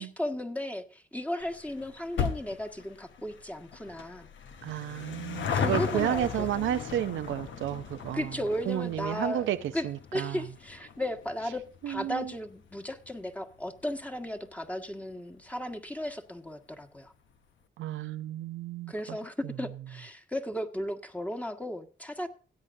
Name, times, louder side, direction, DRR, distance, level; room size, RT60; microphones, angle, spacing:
voice 1, 0.0-4.3 5.5-6.5 8.1-9.5 9.7-17.1 18.9-22.3, left 1 dB, 5° left, 1.5 m, -35 dB
sound 1, 1.4-14.2 14.5-14.6 15.4-15.5 15.7-15.8 16.1-16.2, left 7 dB, 75° left, 0.9 m, -37 dB
voice 2, 4.6-8.3 8.7-10.4 11.8-12.3 17.8-19.2 19.4-19.5, right 12 dB, 90° right, 0.6 m, -32 dB
17.0 x 8.4 x 2.6 m
supercardioid pair, 50°, 19 cm